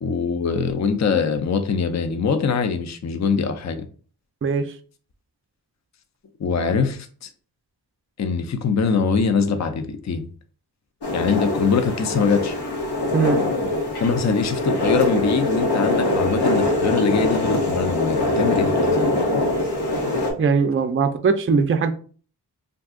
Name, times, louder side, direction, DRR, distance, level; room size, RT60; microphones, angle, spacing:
voice 1, 0.0-3.9 6.4-7.3 8.2-10.3 11.1-12.6 14.0-19.1, left 5 dB, 45° left, 8 dB, 0.5 m, -23 dB
sound 1, 11.0-20.3, left 2 dB, 75° left, 0.9 m, -23 dB
voice 2, 20.4-21.9, right 5 dB, 35° right, 8 dB, 0.4 m, -20 dB
2.6 x 2.4 x 3.6 m, 0.42 s
wide cardioid pair, 45°, 41 cm